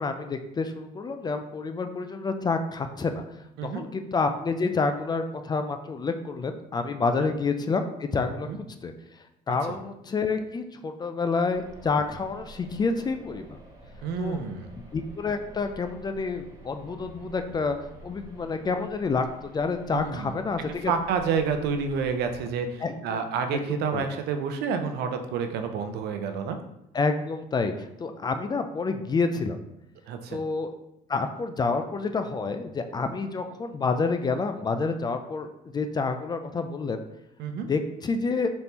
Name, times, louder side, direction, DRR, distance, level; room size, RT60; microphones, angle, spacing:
voice 1, 0.0-3.4 3.7-8.5 8.8-8.9 9.5-13.6 14.2-14.4 14.9-17.8 18.0-20.9 22.8-23.2 23.5-24.1 26.9-29.6 30.3-30.7 31.1-35.5 35.7-37.0 37.7-38.5, left 4 dB, 25° left, 7 dB, 0.3 m, -28 dB
sound 1, 11.5-22.4, right 1 dB, 20° right, 1.2 m, -49 dB
voice 2, 14.0-14.7 19.9-20.3 20.9-26.6 30.1-30.4 37.4-37.7, right 6 dB, 75° right, 7 dB, 0.6 m, -29 dB
4.2 x 3.3 x 2.9 m, 0.81 s
cardioid pair, 110°, 17 cm